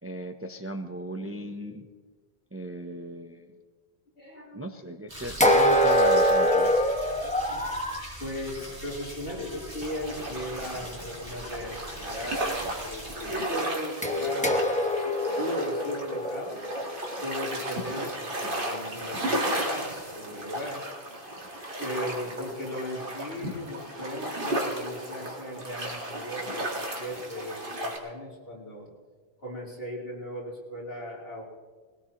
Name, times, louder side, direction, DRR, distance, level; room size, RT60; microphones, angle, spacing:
voice 1, 0.0-1.9 2.5-3.5 4.5-6.7, equal, 15° right, 5 dB, 0.6 m, -35 dB
voice 2, 4.2-4.7 7.2-7.6 8.2-12.4 12.8-14.7 15.0-16.6 17.2-20.8 21.8-28.9 29.4-31.4, left 1 dB, 60° left, -5 dB, 4.1 m, -37 dB
sound 1, 5.1-13.3, equal, 35° right, 5.0 m, -42 dB
sound 2, 5.4-8.1 14.0-18.0, equal, 5° left, 1.1 m, -24 dB
sound 3, 9.8-28.0, right 1 dB, 55° right, 2.1 m, -34 dB
20.5 x 18.0 x 3.0 m, 1.5 s
omnidirectional pair, 1.1 m